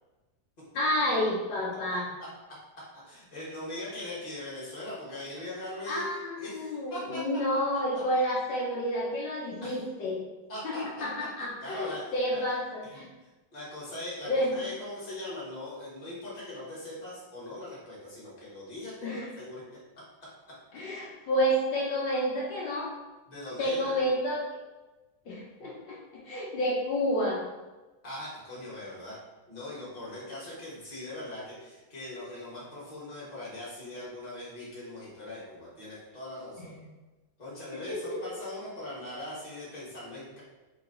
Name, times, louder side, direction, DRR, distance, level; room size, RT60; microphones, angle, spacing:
voice 1, 0.7-2.1 5.9-10.2 10.6-13.1 14.2-14.5 19.0-19.3 20.7-22.9 23.6-24.4 25.3-27.4 36.7-36.8 37.9-38.0, equal, 75° left, -5 dB, 1.7 m, -30 dB
voice 2, 3.0-6.0 6.4-7.3 7.9-8.0 9.6-9.8 10.5-11.1 11.4-12.0 12.3-12.4 12.8-12.9 13.5-19.6 23.3-24.1 28.0-29.2 29.5-36.8 37.4-40.4, left 1 dB, 25° left, -8 dB, 1.4 m, -40 dB
3.8 x 3.1 x 3.8 m, 1.2 s
omnidirectional pair, 2.1 m